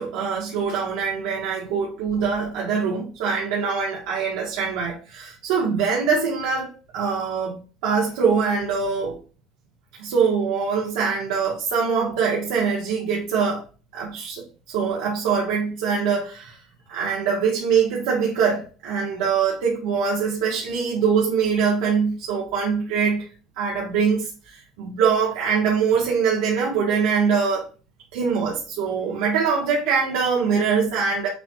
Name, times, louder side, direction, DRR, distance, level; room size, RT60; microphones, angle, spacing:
voice 1, 0.0-7.6 7.8-9.2 10.0-13.6 13.9-16.6 16.9-23.3 23.6-27.7 28.1-31.3, right 6 dB, 85° right, 1.3 m, -23 dB
6.8 x 2.3 x 3.0 m
cardioid pair, 165°, 0 cm